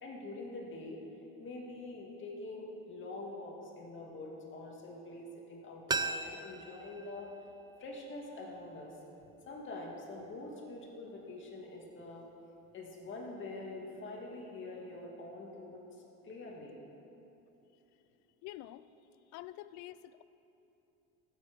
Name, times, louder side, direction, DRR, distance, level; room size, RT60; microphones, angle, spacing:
voice 1, 0.0-1.0 1.4-7.3 7.8-8.9 9.5-12.3 12.7-16.7, left 2 dB, 40° left, -1 dB, 2.4 m, -45 dB
sound 1, 5.9-8.7 9.0-9.1, right 4 dB, 15° right, 0.3 m, -39 dB
voice 2, 18.4-18.9 19.2-20.2, left 14 dB, 70° left, 15 dB, 0.5 m, -47 dB
15.5 x 7.5 x 6.2 m, 2.9 s
cardioid pair, 120°, 30 cm